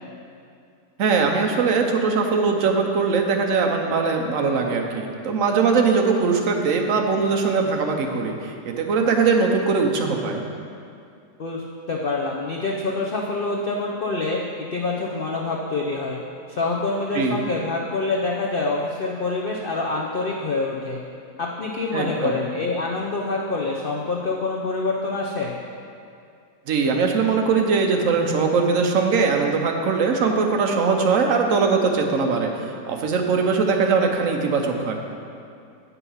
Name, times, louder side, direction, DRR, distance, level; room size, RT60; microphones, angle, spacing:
voice 1, 1.0-10.4 17.1-17.4 21.9-22.3 26.7-35.0, right 4 dB, 60° right, 2 dB, 1.1 m, -21 dB
voice 2, 11.4-16.2 16.5-21.0 21.4-25.6, left 3 dB, 65° left, -1 dB, 0.5 m, -26 dB
8.3 x 5.7 x 5.6 m, 2.4 s
omnidirectional pair, 1.7 m